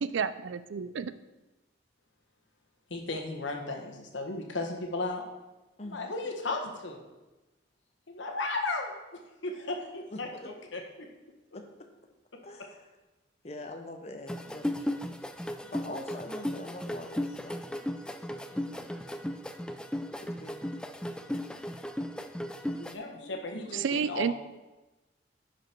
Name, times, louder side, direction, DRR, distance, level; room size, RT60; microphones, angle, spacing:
voice 1, 0.0-1.1 23.7-24.3, right 6 dB, 80° right, 14 dB, 0.4 m, -30 dB
voice 2, 2.9-5.2 5.9-7.0 8.1-8.9 9.4-10.8 22.8-24.3, left 2 dB, 80° left, 2 dB, 1.4 m, -35 dB
voice 3, 5.8-6.4 10.1-10.5 11.5-11.6 12.4-12.8 13.4-15.0 15.7-17.6 18.5-18.9 20.2-20.8, left 1 dB, 35° left, 4 dB, 0.8 m, -43 dB
sound 1, 14.3-22.9, left 1 dB, 5° left, 0.3 m, -36 dB
10.5 x 5.2 x 4.5 m, 1.1 s
head